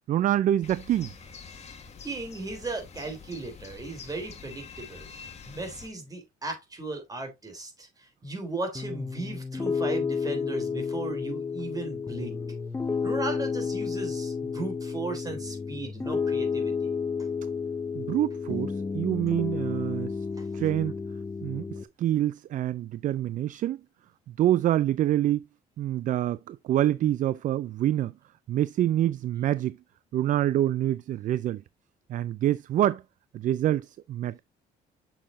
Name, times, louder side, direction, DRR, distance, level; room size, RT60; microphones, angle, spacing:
voice 1, 0.1-1.1 17.9-20.2 20.5-21.0 21.4-23.8 24.4-25.4 25.8-28.1 28.5-29.8 30.1-31.6 32.1-33.0 33.3-34.4, right 12 dB, 50° right, 0.4 m, -26 dB
sound 1, 0.6-5.9, left 5 dB, 40° left, 1.9 m, -46 dB
voice 2, 2.0-5.1 5.5-12.4 13.0-17.0 20.4-20.5, right 3 dB, 20° right, 3.4 m, -36 dB
Piano, 8.7-21.8, left 5 dB, 15° left, 0.7 m, -31 dB
7.6 x 6.6 x 2.6 m
cardioid pair, 110°, 17 cm